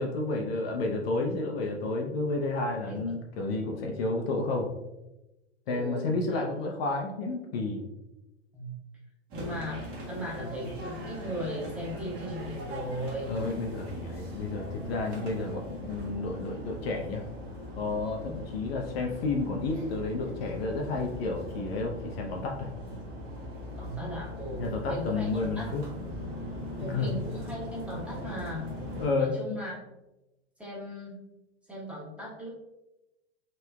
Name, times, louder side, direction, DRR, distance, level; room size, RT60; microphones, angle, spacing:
voice 1, 0.0-4.7 5.7-7.8 13.3-17.2 17.8-22.7 24.6-25.8 26.8-27.1 29.0-29.3, left 3 dB, 55° left, 1 dB, 0.6 m, -31 dB
voice 2, 5.7-6.4 8.5-8.8 9.3-13.3 18.2-18.4 23.8-25.7 26.8-28.7 29.2-29.7 30.6-31.2 31.7-32.6, equal, 5° right, -7 dB, 1.0 m, -37 dB
sound 1, 9.3-29.1, left 1 dB, 35° right, 1.1 m, -40 dB
3.2 x 2.9 x 2.2 m, 0.97 s
hypercardioid pair, 100°, 36 cm